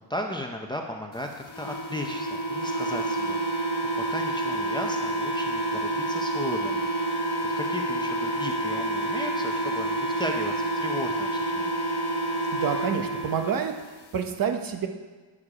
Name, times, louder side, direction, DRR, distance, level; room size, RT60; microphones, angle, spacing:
voice 1, 0.1-3.7 4.0-6.9 7.6-11.8, left 1 dB, 10° left, 2 dB, 0.6 m, -36 dB
sound 1, 1.5-13.6, right 1 dB, 50° left, 1.3 m, -28 dB
voice 2, 12.5-13.7 14.1-14.9, right 7 dB, 45° right, 6 dB, 1.0 m, -28 dB
9.8 x 7.0 x 4.9 m, 1.3 s
cardioid pair, 150°, 49 cm